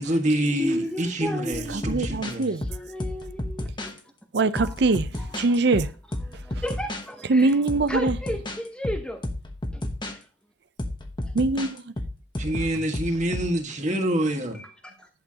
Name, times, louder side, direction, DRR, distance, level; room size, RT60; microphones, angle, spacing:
voice 1, 0.0-2.4 12.4-14.6, right 1 dB, 35° right, 1.7 m, -26 dB
voice 2, 0.6-2.0 2.7-3.9 4.6-4.7 5.2-5.4 6.3-7.5 7.9-9.2 9.7-10.3 11.2-11.3 13.3-13.5 13.9-14.0 14.5-15.1, equal, 5° left, 0.8 m, -34 dB
sound 1, 1.5-4.0 4.6-7.0 7.5-10.1 10.8-13.5, left 1 dB, 25° left, 1.0 m, -32 dB
voice 3, 1.7-2.6 4.3-5.9 6.3-6.6 7.3-8.2 11.3-11.9, right 3 dB, 55° right, 0.5 m, -23 dB
11.0 x 6.9 x 2.9 m
head